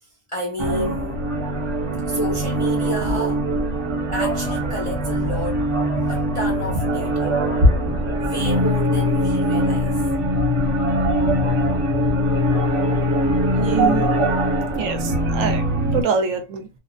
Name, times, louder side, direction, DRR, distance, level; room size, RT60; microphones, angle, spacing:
voice 1, 0.0-1.2 2.0-3.5 4.1-5.7 6.1-7.4 8.2-10.0 12.9-13.0, left 1 dB, 40° left, 0.4 m, -31 dB
sound 1, 0.6-16.0, equal, 45° right, 1.1 m, -21 dB
voice 2, 13.2-14.1 14.8-15.6 15.9-16.7, right 5 dB, 75° right, 0.9 m, -25 dB
2.5 x 2.3 x 2.4 m
omnidirectional pair, 1.4 m